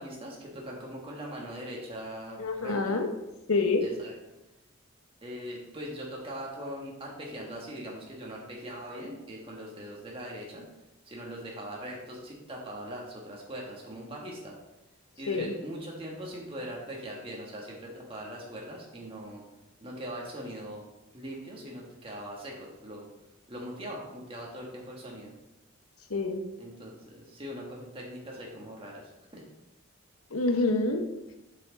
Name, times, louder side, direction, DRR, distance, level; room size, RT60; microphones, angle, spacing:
voice 1, 0.0-3.0 3.8-4.1 5.2-10.6 11.0-14.6 15.2-19.5 19.8-20.8 21.1-23.1 23.5-25.3 26.6-29.0 29.3-29.4, equal, 25° right, -2 dB, 1.6 m, -41 dB
voice 2, 2.4-3.1 3.5-3.9 15.3-15.5 26.1-26.4 30.3-31.1, left 3 dB, 85° left, 6 dB, 0.9 m, -27 dB
6.6 x 6.1 x 3.9 m, 1.0 s
head